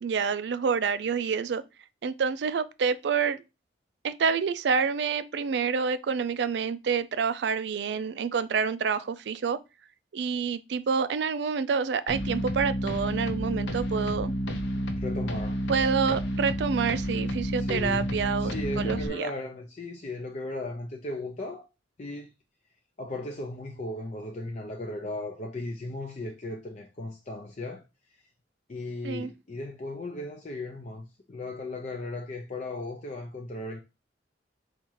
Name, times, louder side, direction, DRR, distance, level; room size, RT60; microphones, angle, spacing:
voice 1, 0.0-1.6 2.0-3.4 4.0-9.6 10.1-14.3 15.7-19.3 29.0-29.3, right 6 dB, 65° right, 0.4 m, -28 dB
FL Beat with tension, 12.1-19.1, equal, 85° left, 0.7 m, -30 dB
voice 2, 15.0-15.6 17.6-18.1 18.4-21.7 22.0-22.3 23.0-27.8 28.7-33.8, left 2 dB, 40° left, 0.5 m, -36 dB
4.2 x 2.4 x 4.5 m
head